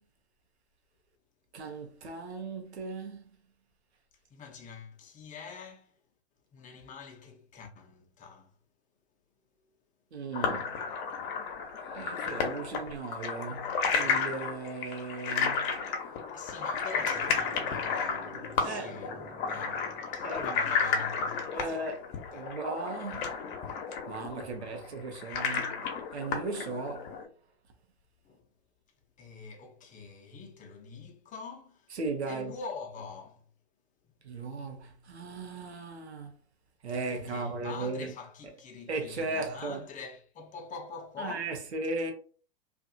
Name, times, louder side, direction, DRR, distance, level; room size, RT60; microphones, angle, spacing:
voice 1, 1.5-3.2 10.1-10.7 11.9-15.7 18.6-18.9 20.2-20.6 21.5-22.0 22.3-23.3 24.1-25.8 26.1-27.1 31.9-32.5 34.2-36.3 36.8-38.1 38.9-39.8 41.2-42.1, right 3 dB, 90° right, 0.8 m, -36 dB
voice 2, 4.3-6.0 6.5-8.5 16.3-22.5 28.2-28.4 29.2-32.0 32.2-33.5 37.1-41.6, left 5 dB, 25° left, 0.7 m, -45 dB
sound 1, 10.3-27.2, left 5 dB, 50° left, 0.9 m, -32 dB
sound 2, 17.0-20.9, right 2 dB, 20° right, 0.6 m, -50 dB
2.5 x 2.4 x 2.6 m
hypercardioid pair, 100°, 32 cm